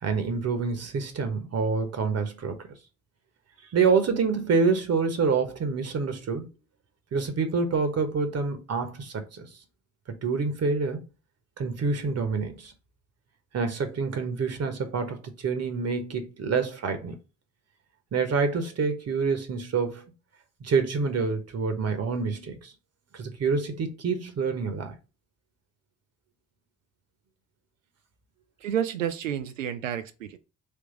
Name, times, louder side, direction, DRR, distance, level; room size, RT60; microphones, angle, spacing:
voice 1, 0.0-2.7 3.7-6.5 7.1-9.4 10.1-11.0 11.6-12.7 13.5-17.2 18.1-20.1 20.6-22.7 23.1-24.9, right 5 dB, 40° right, 1.1 m, -27 dB
voice 2, 28.6-30.4, right 9 dB, 80° right, 0.5 m, -30 dB
3.5 x 3.4 x 4.5 m
figure-of-eight pair, 40°, 38 cm